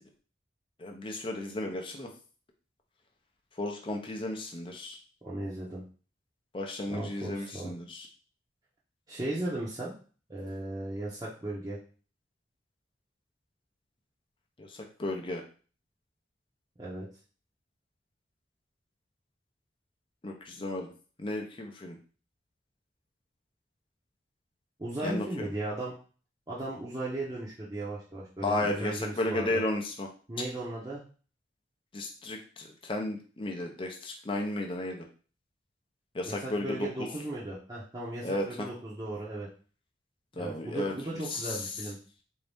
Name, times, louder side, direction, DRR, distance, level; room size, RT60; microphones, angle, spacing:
voice 1, 0.8-2.1 3.6-5.0 6.5-8.1 14.6-15.4 20.2-20.9 21.2-22.0 25.0-25.5 28.4-30.1 31.9-35.0 36.1-36.9 38.2-38.7 40.4-40.9 41.3-41.6, left 1 dB, 30° left, 2 dB, 0.6 m, -34 dB
voice 2, 5.2-5.8 6.9-7.7 9.1-9.9 10.3-11.8 16.8-17.1 24.8-25.9 26.5-29.6 30.3-31.0 36.3-39.5 40.3-42.0, right 1 dB, 20° right, -7 dB, 0.7 m, -36 dB
4.0 x 2.7 x 3.4 m, 0.39 s
head